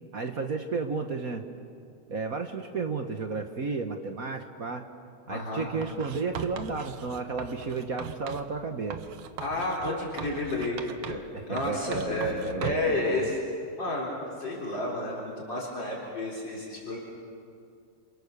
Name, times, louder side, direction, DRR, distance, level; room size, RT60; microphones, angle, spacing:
voice 1, 0.1-1.5 2.1-4.8 5.3-9.0 11.3-13.3, right 4 dB, 45° right, 5 dB, 1.5 m, -33 dB
voice 2, 5.3-5.7 9.4-13.4 13.8-14.1 14.4-17.0, left 2 dB, 55° left, -4 dB, 4.6 m, -31 dB
Writing, 5.8-8.5 8.9-11.3 11.6-13.0, right 8 dB, 85° right, 2.0 m, -39 dB
29.5 x 27.5 x 6.8 m, 2.4 s
omnidirectional pair, 2.4 m